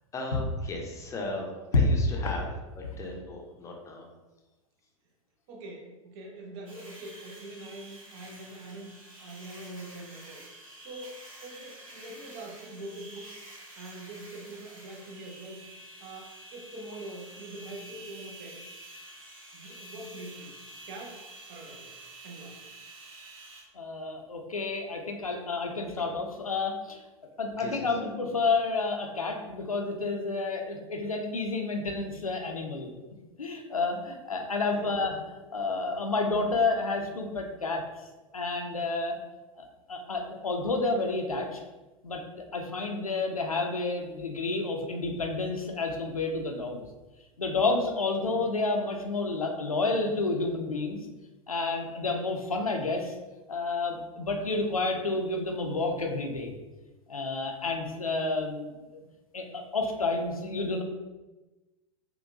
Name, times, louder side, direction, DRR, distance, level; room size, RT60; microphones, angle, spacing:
voice 1, 0.1-2.5 2.8-4.0 27.6-27.7, left 2 dB, 15° left, 0 dB, 0.6 m, -37 dB
voice 2, 5.5-8.9 9.2-10.4 10.8-13.3 13.8-15.6 16.0-18.6 19.5-20.5 20.9-21.2 21.5-21.9 22.2-22.6 34.7-34.9, right 2 dB, 45° right, 1 dB, 0.6 m, -44 dB
sound 1, 6.7-23.6, right 1 dB, 70° right, 1.0 m, -48 dB
voice 3, 23.7-27.0 27.4-32.9 33.4-35.2 35.5-37.8 38.3-39.2 39.6-41.6 42.0-42.2 42.5-46.8 47.4-51.1 51.5-53.1 53.5-56.5 57.1-59.0 59.3-60.8, left 3 dB, 85° left, 3 dB, 0.5 m, -30 dB
3.6 x 2.2 x 2.6 m, 1.1 s
figure-of-eight pair, 85°, 18 cm